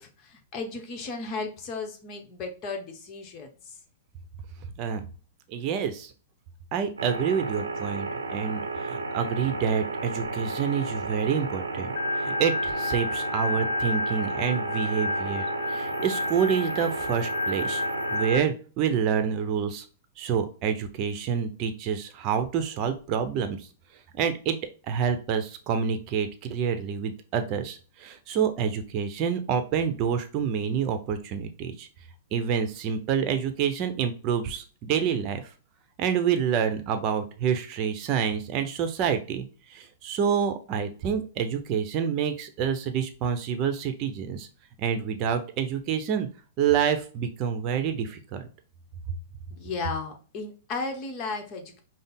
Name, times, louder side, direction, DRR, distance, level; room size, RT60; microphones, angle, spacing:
voice 1, 0.0-3.5 49.5-51.8, left 3 dB, 35° left, 3 dB, 1.1 m, -35 dB
voice 2, 5.5-6.1 6.7-11.9 12.2-15.4 15.7-17.8 18.1-19.8 20.2-23.6 24.1-24.6 24.9-31.9 32.3-35.4 36.0-39.4 39.7-44.5 44.8-46.3 46.6-48.4, right 7 dB, 40° right, 8 dB, 0.8 m, -27 dB
sound 1, 7.0-18.4, right 3 dB, 85° right, 0.7 m, -33 dB
Organ, 12.0-18.4, left 3 dB, 65° left, 0.4 m, -31 dB
5.2 x 2.0 x 3.9 m, 0.37 s
figure-of-eight pair, 105°, 0 cm